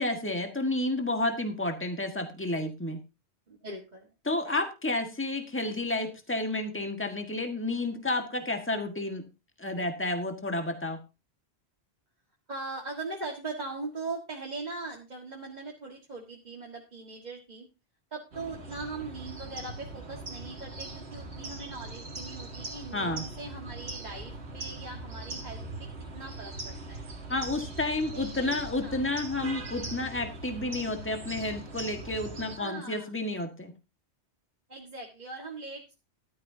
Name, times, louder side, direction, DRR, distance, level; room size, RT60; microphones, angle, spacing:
voice 1, 0.0-3.0 4.2-9.3 9.6-11.0 22.9-23.2 27.3-33.7, left 2 dB, 10° left, 5 dB, 1.7 m, -31 dB
voice 2, 3.5-4.1 4.4-4.5 12.5-17.7 18.1-27.0 28.1-29.0 32.6-33.1 34.7-35.9, right 3 dB, 40° right, -1 dB, 1.9 m, -40 dB
sound 1, 18.3-32.6, right 2 dB, 70° right, 2.1 m, -41 dB
13.5 x 12.5 x 2.8 m, 0.26 s
omnidirectional pair, 1.1 m